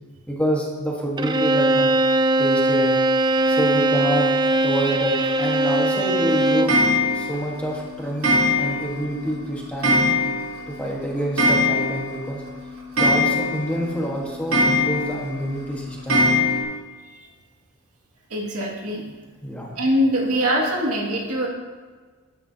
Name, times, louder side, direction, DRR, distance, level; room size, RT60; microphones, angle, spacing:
voice 1, 0.3-1.9 2.4-2.9 3.5-4.3 4.6-6.8 7.1-8.3 8.6-10.1 10.7-12.4 13.0-16.4 19.4-19.7, equal, 5° left, -2 dB, 1.4 m, -27 dB
Bowed string instrument, 1.2-6.8, right 1 dB, 20° right, 0.4 m, -20 dB
Clock, 6.7-7.4 8.2-9.0 9.3-9.4 9.8-10.6 10.9-11.0 11.2-12.2 12.5-12.6 13.0-13.8 14.5-15.2 16.1-16.6, left 1 dB, 70° right, 3.2 m, -20 dB
voice 2, 18.3-19.0 19.8-21.5, equal, 85° right, -2 dB, 2.2 m, -22 dB
13.0 x 9.3 x 2.8 m, 1.4 s
head